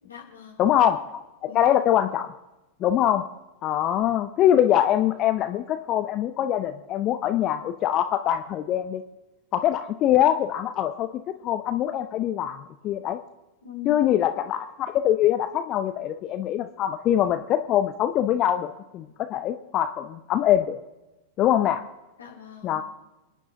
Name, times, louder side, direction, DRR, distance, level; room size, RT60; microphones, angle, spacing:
voice 1, 0.0-0.7 1.4-1.8 13.6-14.1 22.2-22.8, left 9 dB, 70° left, -2 dB, 3.8 m, -41 dB
voice 2, 0.6-1.2 1.5-2.3 2.8-3.2 3.6-9.0 9.5-13.2 13.8-20.8 21.4-21.8 22.6-22.8, left 11 dB, 35° left, 9 dB, 0.7 m, -23 dB
27.5 x 10.0 x 3.8 m, 1.0 s
figure-of-eight pair, 90°, 0 cm